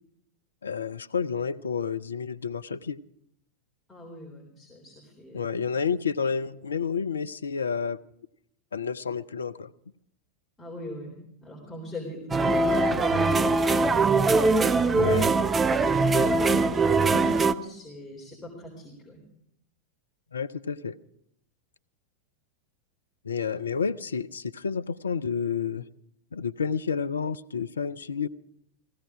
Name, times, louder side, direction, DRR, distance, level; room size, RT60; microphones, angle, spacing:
voice 1, 0.6-3.0 5.3-8.0 8.7-9.7 14.9-15.3 20.3-21.0 23.2-25.9 26.3-28.3, left 6 dB, 70° left, 16 dB, 0.5 m, -30 dB
voice 2, 3.9-5.5 10.6-11.1 11.4-14.3 15.9-19.2, left 1 dB, 10° left, -3 dB, 3.9 m, -39 dB
sound 1, 12.3-17.5, right 3 dB, 15° right, 0.5 m, -22 dB
16.0 x 16.0 x 5.0 m, 0.73 s
figure-of-eight pair, 90°, 0 cm